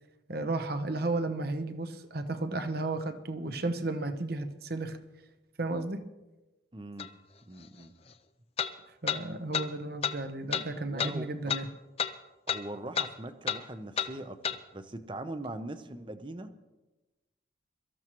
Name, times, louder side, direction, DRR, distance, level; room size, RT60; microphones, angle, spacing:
voice 1, 0.3-5.0 5.6-6.1 9.0-11.7, right 2 dB, 50° right, 8 dB, 0.9 m, -33 dB
voice 2, 6.7-7.1 7.5-7.9 10.8-11.5 12.5-16.5, right 1 dB, 25° right, 10 dB, 0.7 m, -41 dB
sound 1, 7.0-7.1 8.6-8.7 9.1-9.2 9.5-9.7 10.0-10.2 10.5-10.7 11.0-11.1 11.5-11.6 12.0-12.1 12.5-12.6 12.9-13.1 13.5-13.6 14.0-14.1 14.4-14.6, left 7 dB, 30° left, 0.5 m, -30 dB
23.5 x 13.5 x 3.1 m, 1.1 s
head